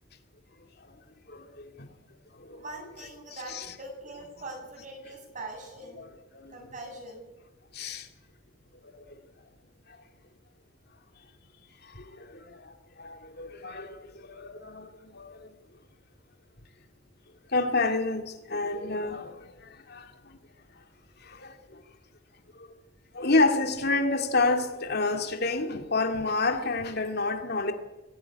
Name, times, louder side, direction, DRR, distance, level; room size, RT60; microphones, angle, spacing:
voice 1, 1.3-1.6 2.4-2.6 3.3-3.8 6.0-6.1 6.3-6.6 7.7-8.1 8.8-9.1 11.9-12.7 13.0-15.5 17.5-20.1 21.2-21.6 22.6-22.7 23.1-27.7, left 3 dB, 55° left, 2.4 m, -29 dB
voice 2, 2.5-6.0 6.5-7.3, right 2 dB, 40° right, 7.7 m, -42 dB
23.0 x 17.0 x 9.8 m
head